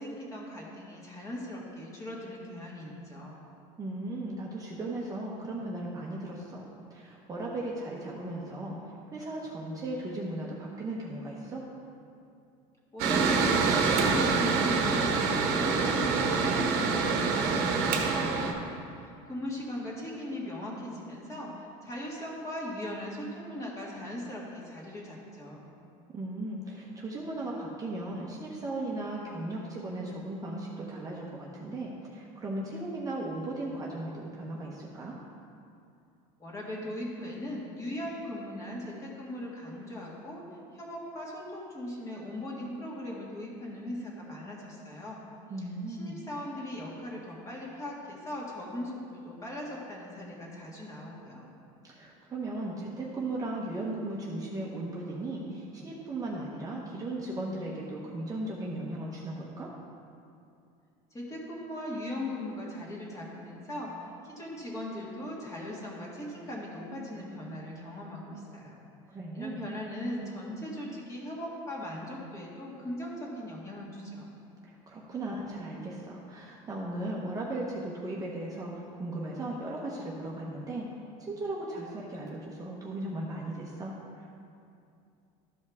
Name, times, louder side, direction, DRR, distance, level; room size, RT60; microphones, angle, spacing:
voice 1, 0.0-3.4 12.9-25.7 36.4-40.4 40.7-45.2 45.9-51.5 61.1-68.8 69.3-74.3, left 1 dB, 20° left, -4 dB, 1.8 m, -39 dB
voice 2, 3.8-11.7 26.1-35.2 45.5-46.2 51.8-59.7 69.1-69.6 74.6-80.9 81.2-84.3, right 2 dB, 20° right, -4 dB, 0.9 m, -37 dB
Mechanical fan, 13.0-18.5, right 4 dB, 70° right, 1.1 m, -26 dB
13.0 x 5.3 x 3.5 m, 2.5 s
cardioid pair, 135°, 16 cm